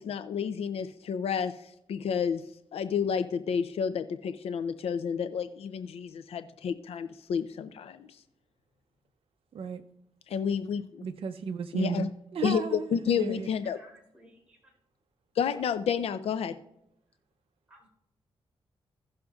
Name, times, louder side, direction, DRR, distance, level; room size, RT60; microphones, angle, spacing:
voice 1, 0.0-2.4 2.7-8.2 10.3-11.1 11.7-12.1 12.4-13.8 15.4-16.6, left 7 dB, 80° left, 10 dB, 0.4 m, -30 dB
voice 2, 11.0-13.5, right 6 dB, 70° right, 6 dB, 0.5 m, -34 dB
voice 3, 13.6-14.7 17.7-17.9, equal, 10° right, -1 dB, 4.0 m, -57 dB
16.5 x 6.4 x 2.4 m, 0.79 s
cardioid pair, 85°, 10 cm